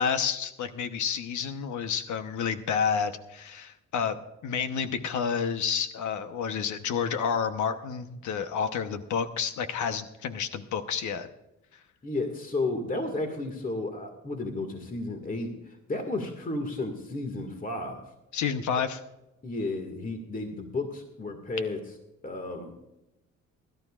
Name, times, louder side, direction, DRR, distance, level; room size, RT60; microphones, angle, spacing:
voice 1, 0.0-4.2 4.4-11.3 18.3-19.0, left 6 dB, 70° left, 9 dB, 1.1 m, -29 dB
voice 2, 12.0-18.0 18.7-18.8 19.4-21.9 22.2-22.8, left 2 dB, 30° left, 5 dB, 2.0 m, -33 dB
21.5 x 12.0 x 2.5 m, 0.94 s
cardioid pair, 90°, 30 cm